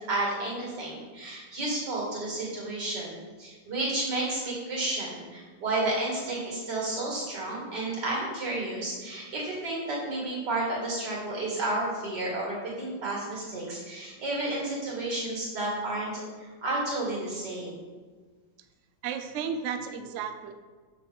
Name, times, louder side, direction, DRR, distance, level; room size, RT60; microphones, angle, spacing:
voice 1, 0.0-17.8, right 2 dB, 65° right, -4 dB, 2.9 m, -31 dB
voice 2, 19.0-20.5, right 7 dB, 80° right, 7 dB, 0.6 m, -33 dB
6.2 x 4.1 x 6.2 m, 1.4 s
omnidirectional pair, 2.0 m